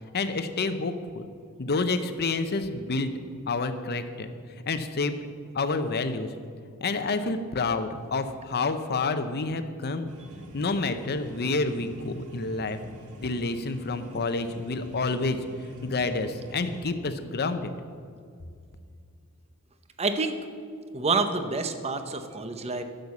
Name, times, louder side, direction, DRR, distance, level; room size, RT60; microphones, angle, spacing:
voice 1, 0.1-1.3 1.6-3.1 3.5-4.3 4.7-5.1 5.5-6.3 6.8-10.1 10.5-12.8 13.2-15.4 15.8-17.8, left 3 dB, 45° left, 9 dB, 0.7 m, -28 dB
sound 1, 10.1-16.9, equal, 75° right, 1.1 m, -46 dB
voice 2, 20.0-20.3 20.9-22.8, right 3 dB, 30° right, 8 dB, 0.7 m, -27 dB
10.5 x 6.5 x 7.1 m, 2.2 s
head